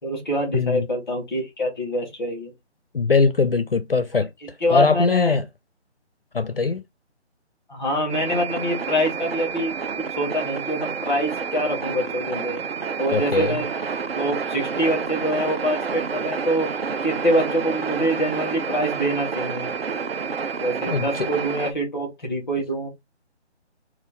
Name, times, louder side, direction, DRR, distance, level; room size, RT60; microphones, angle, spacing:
voice 1, 0.0-2.5 4.1-4.2 4.6-5.4 7.7-9.7 10.2-12.6 13.0-13.7 14.1-16.7 17.0-19.7 20.6-22.9, equal, ahead, 1.1 m, -25 dB
voice 2, 0.5-0.9 2.9-4.3 4.7-5.5 6.3-6.8 13.1-13.6 20.9-21.3, left 4 dB, 55° left, 0.4 m, -21 dB
sound 1, 8.1-21.7, right 5 dB, 60° right, 0.5 m, -29 dB
4.1 x 2.5 x 3.7 m
hypercardioid pair, 180°, 35 cm